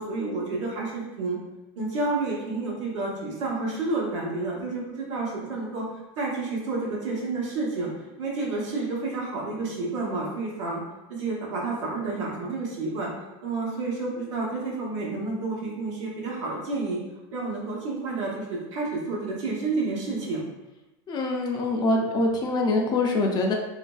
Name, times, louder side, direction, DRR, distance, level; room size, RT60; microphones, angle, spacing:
voice 1, 0.0-1.4 1.8-5.9 6.2-7.9 8.2-10.8 11.1-13.1 13.4-17.0 17.3-20.4, right 3 dB, 80° right, -3 dB, 1.0 m, -30 dB
voice 2, 21.1-23.5, left 2 dB, 30° left, 1 dB, 0.4 m, -24 dB
3.0 x 2.5 x 2.2 m, 1.0 s
supercardioid pair, 140°, 15 cm